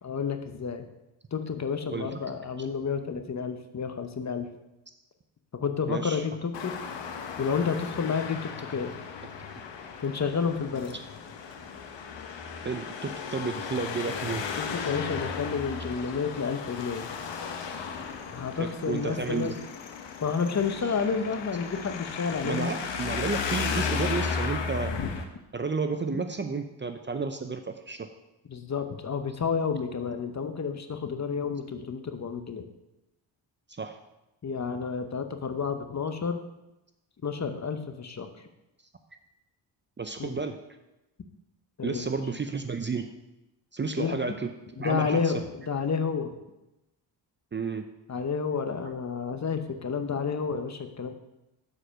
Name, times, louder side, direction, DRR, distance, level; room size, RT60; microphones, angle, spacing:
voice 1, 0.0-0.8 1.3-4.5 5.5-6.7 7.4-8.9 10.0-10.9 14.6-17.1 18.3-19.6 20.2-22.7 28.5-32.7 34.4-36.4 37.2-38.3 40.2-40.3 41.8-42.1 44.0-44.2 44.8-45.4 45.7-46.3 48.1-51.1, left 6 dB, 35° left, 8 dB, 0.9 m, -30 dB
voice 2, 1.9-2.2 5.9-6.2 9.6-9.7 12.6-14.4 18.6-19.6 22.4-24.9 25.5-28.1 33.8-34.0 40.0-40.5 41.8-43.1 43.7-44.5 44.8-45.3 47.5-47.8, right 4 dB, 25° right, 7 dB, 0.6 m, -32 dB
Traffic noise roadway noise, 6.5-25.2, left 5 dB, 65° left, 1.1 m, -35 dB
6.7 x 4.9 x 6.2 m, 0.95 s
supercardioid pair, 65°, 47 cm